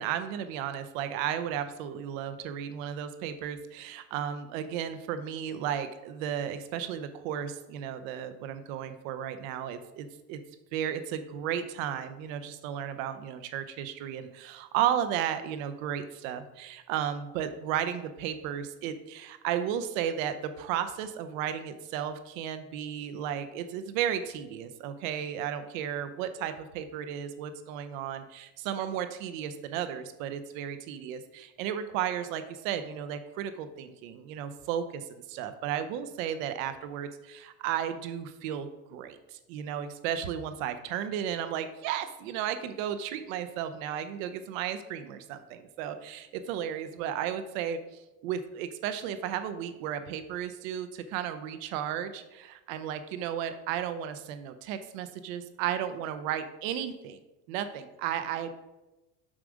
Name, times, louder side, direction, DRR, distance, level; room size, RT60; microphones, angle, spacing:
voice 1, 0.0-10.4 10.7-57.2 57.5-58.5, right 9 dB, 80° right, 10 dB, 0.9 m, -34 dB
7.5 x 6.3 x 4.9 m, 1.0 s
cardioid pair, 160°, 39 cm